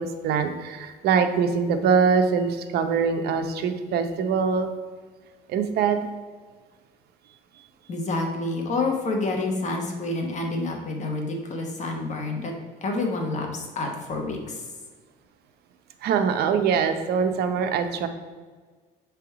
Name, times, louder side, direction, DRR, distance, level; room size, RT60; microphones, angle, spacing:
voice 1, 0.0-4.7 5.5-6.0 16.0-18.1, right 6 dB, 70° right, 7 dB, 0.7 m, -23 dB
voice 2, 7.9-12.5 12.8-13.5 13.7-14.6, left 2 dB, 45° left, 2 dB, 1.2 m, -28 dB
6.7 x 3.5 x 4.7 m, 1.5 s
cardioid pair, 110°, 17 cm